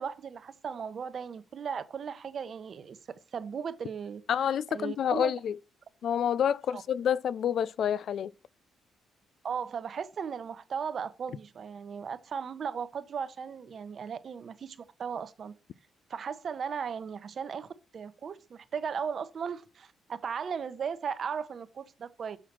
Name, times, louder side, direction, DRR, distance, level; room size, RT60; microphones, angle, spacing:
voice 1, 0.0-3.0 3.3-4.2 4.7-5.3 6.7-6.8 9.4-15.5 16.1-22.4, right 6 dB, 50° right, 0.8 m, -36 dB
voice 2, 4.3-5.6 6.0-8.3, left 9 dB, 65° left, 0.4 m, -28 dB
6.6 x 5.7 x 6.1 m
cardioid pair, 90°, 0 cm